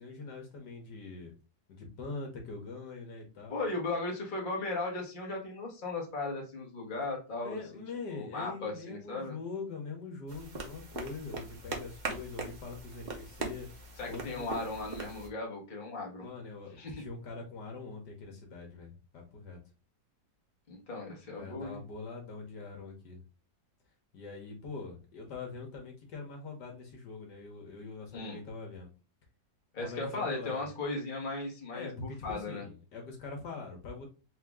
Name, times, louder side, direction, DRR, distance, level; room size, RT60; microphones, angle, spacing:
voice 1, 0.0-1.3 1.7-3.6 7.4-13.7 14.1-14.5 16.2-19.6 21.4-23.2 24.1-28.9 29.8-30.7 31.7-34.1, left 4 dB, 70° left, 2 dB, 1.6 m, -43 dB
voice 2, 3.5-7.8 8.1-9.4 14.0-16.3 16.7-17.0 20.7-21.8 28.1-28.4 29.7-32.6, left 2 dB, 30° left, -1 dB, 1.3 m, -37 dB
sound 1, 10.3-15.3, right 3 dB, 45° right, 0.5 m, -41 dB
4.0 x 2.8 x 3.5 m, 0.32 s
omnidirectional pair, 1.9 m